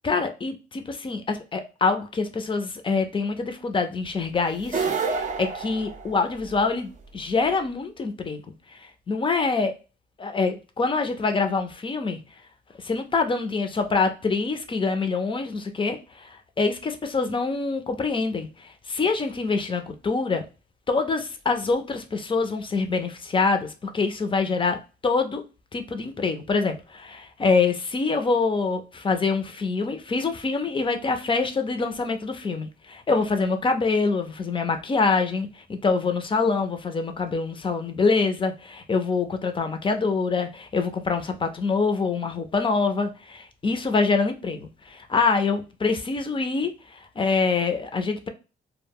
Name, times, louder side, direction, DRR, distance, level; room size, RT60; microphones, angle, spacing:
voice 1, 0.0-8.4 9.1-9.7 10.2-12.2 12.8-20.5 20.9-24.8 25.0-25.4 25.7-48.3, left 4 dB, 25° left, 0.5 m, -25 dB
sound 1, 4.6-6.6, right 4 dB, 40° right, 0.5 m, -28 dB
2.1 x 2.1 x 3.4 m
cardioid pair, 90°, 20 cm